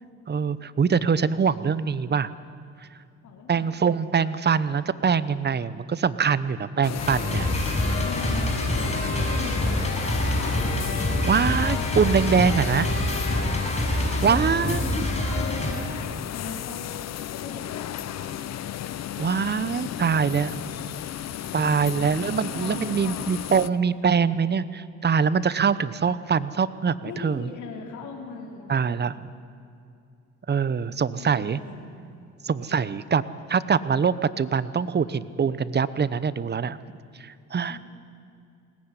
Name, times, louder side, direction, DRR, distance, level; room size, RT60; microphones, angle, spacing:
voice 1, 0.3-2.3 3.5-7.5 11.2-12.9 14.2-15.1 19.2-20.6 21.5-27.5 28.7-29.3 30.5-31.6 32.4-33.2 33.5-36.8 37.2-37.8, right 6 dB, 35° right, 16 dB, 0.9 m, -24 dB
voice 2, 3.2-3.8 8.0-10.6 14.3-18.4 21.9-23.4 27.0-28.7 31.0-31.9 37.2-37.3 37.7-37.8, left 5 dB, 75° left, 1 dB, 3.4 m, -39 dB
sound 1, 6.8-23.7, left 11 dB, 60° left, 0.7 m, -34 dB
sound 2, 7.0-15.7, left 1 dB, 20° left, 6.1 m, -26 dB
21.0 x 18.0 x 9.9 m, 2.5 s
cardioid pair, 90°, 30 cm